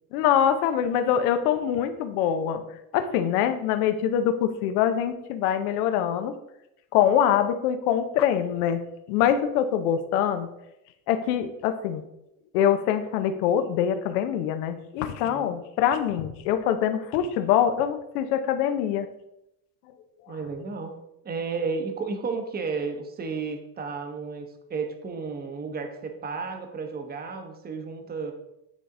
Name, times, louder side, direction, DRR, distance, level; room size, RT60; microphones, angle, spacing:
voice 1, 0.1-2.6 2.9-6.3 6.9-10.5 11.1-12.0 12.5-19.1, left 9 dB, 80° left, 10 dB, 0.8 m, -24 dB
voice 2, 15.1-15.5 20.3-21.0 21.2-28.3, right 4 dB, 20° right, 6 dB, 0.8 m, -33 dB
9.5 x 3.4 x 3.7 m, 0.85 s
cardioid pair, 130°, 44 cm